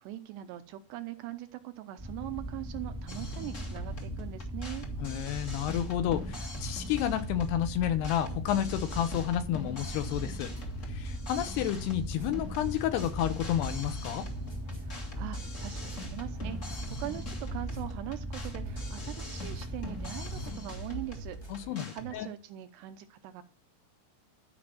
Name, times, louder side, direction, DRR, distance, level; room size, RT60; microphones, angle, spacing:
voice 1, 0.0-4.9 14.8-23.4, right 15 dB, 80° right, 9 dB, 2.6 m, -42 dB
sound 1, 2.0-20.5, equal, 10° right, 1.1 m, -39 dB
sound 2, 3.1-22.1, left 1 dB, 55° left, 0.8 m, -44 dB
voice 2, 5.0-10.5 10.9-14.3 21.5-22.3, left 11 dB, 75° left, 10 dB, 2.6 m, -31 dB
sound 3, 12.1-21.7, right 1 dB, 30° left, 0.5 m, -48 dB
12.5 x 5.1 x 7.5 m, 0.37 s
omnidirectional pair, 5.2 m